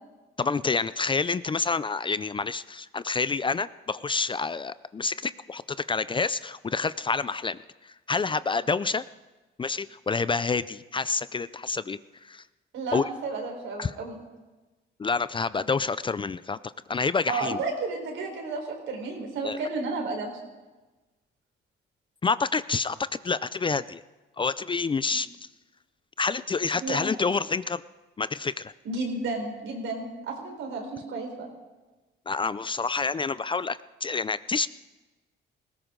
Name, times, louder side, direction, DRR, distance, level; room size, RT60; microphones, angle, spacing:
voice 1, 0.4-7.6 8.1-9.0 9.6-12.0 12.2-12.4 12.9-13.0 13.8-13.9 15.0-17.6 19.4-19.6 22.2-23.0 23.2-24.0 24.4-25.3 26.2-27.8 28.2-28.7 32.3-34.7, left 4 dB, 25° left, 16 dB, 0.4 m, -28 dB
voice 2, 12.7-14.2 17.3-20.3 26.8-27.0 28.8-31.5, right 3 dB, 80° right, 1 dB, 4.3 m, -32 dB
19.0 x 16.5 x 3.8 m, 1.2 s
cardioid pair, 90°, 20 cm